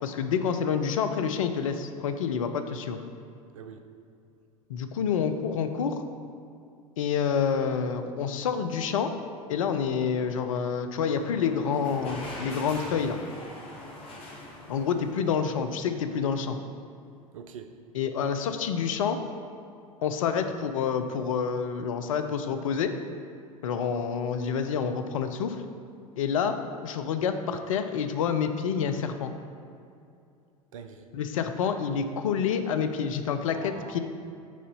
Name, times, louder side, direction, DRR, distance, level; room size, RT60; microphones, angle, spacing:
voice 1, 0.0-3.0 4.7-6.0 7.0-9.1 9.5-13.2 14.7-16.6 17.9-19.2 20.0-22.9 23.6-25.6 26.2-26.5 26.8-29.3 31.1-34.0, left 6 dB, 65° left, 8 dB, 0.5 m, -28 dB
voice 2, 3.5-3.8 17.3-17.7 30.7-31.1 33.5-34.0, right 7 dB, 65° right, 7 dB, 0.5 m, -43 dB
sound 1, 11.0-16.2, left 1 dB, 30° left, 1.3 m, -43 dB
6.3 x 3.9 x 5.4 m, 2.5 s
figure-of-eight pair, 80°, 19 cm